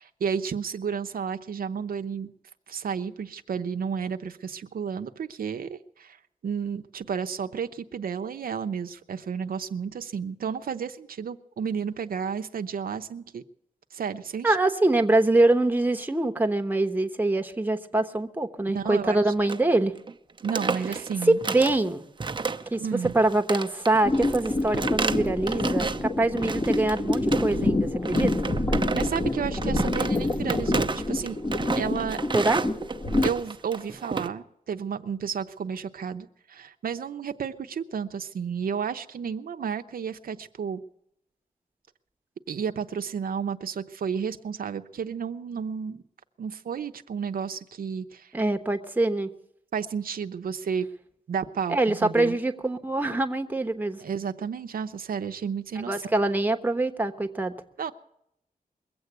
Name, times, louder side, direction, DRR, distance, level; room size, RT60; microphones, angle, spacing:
voice 1, 0.0-2.3 2.7-13.4 13.9-14.6 18.7-19.2 20.4-21.4 22.8-23.1 28.9-31.4 31.8-32.2 33.2-40.8 42.5-46.0 46.4-48.3 49.7-50.9 51.3-52.4 54.0-56.0 57.8-57.9, right 7 dB, 80° right, 7 dB, 0.7 m, -32 dB
voice 2, 14.4-19.9 21.3-22.0 22.7-22.8 23.1-28.3 32.3-32.6 48.3-49.3 51.7-54.0 55.9-57.5, right 2 dB, 10° right, 5 dB, 1.1 m, -24 dB
Footstep - Creaky Wooden Floor, 19.4-19.7 20.0-20.1 20.4-21.8 22.2-22.8 23.0-26.1 26.4-27.7 28.0-34.3, right 4 dB, 35° right, 0.8 m, -32 dB
sound 1, 24.0-33.3, left 2 dB, 25° left, 1.2 m, -27 dB
22.0 x 8.0 x 8.0 m, 0.77 s
wide cardioid pair, 115°, 15 cm